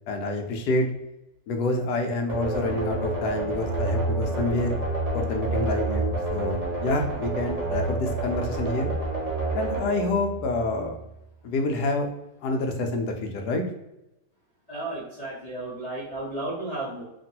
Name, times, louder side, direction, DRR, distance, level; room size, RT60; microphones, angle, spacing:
voice 1, 0.1-0.9 1.5-4.8 5.1-8.9 9.5-11.0 11.4-12.1 12.4-13.6, left 2 dB, 70° left, 3 dB, 1.1 m, -27 dB
sound 1, 2.3-11.0, right 2 dB, 55° right, 0.4 m, -29 dB
voice 2, 14.7-17.0, right 2 dB, 35° left, -8 dB, 0.7 m, -33 dB
2.9 x 2.5 x 2.7 m, 0.93 s
omnidirectional pair, 1.9 m